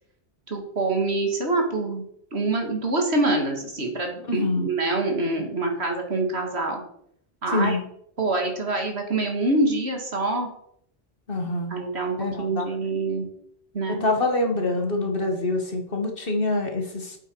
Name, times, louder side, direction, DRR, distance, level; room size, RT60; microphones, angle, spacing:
voice 1, 0.5-2.0 2.3-6.8 7.4-7.8 8.2-10.5 11.7-13.3 13.7-14.0, right 2 dB, 70° right, 2 dB, 2.4 m, -25 dB
voice 2, 4.2-4.7 7.5-7.9 11.3-11.9 12.2-12.8 13.9-17.2, left 2 dB, 55° left, 3 dB, 1.8 m, -26 dB
8.4 x 8.1 x 4.7 m, 0.70 s
omnidirectional pair, 1.1 m